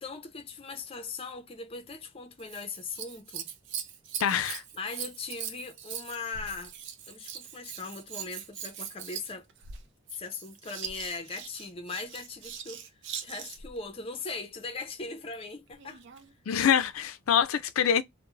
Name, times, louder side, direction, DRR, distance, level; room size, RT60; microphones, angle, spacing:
voice 1, 0.0-3.5 4.7-6.7 7.1-9.5 10.1-12.8 13.2-16.0, left 4 dB, 25° left, 0.5 m, -39 dB
Scissors, 2.4-13.8 15.7-16.3 17.0-17.1, right 8 dB, 60° right, 0.4 m, -41 dB
voice 2, 4.2-4.6 16.5-18.0, left 8 dB, 85° left, 0.4 m, -25 dB
2.2 x 2.1 x 3.0 m
head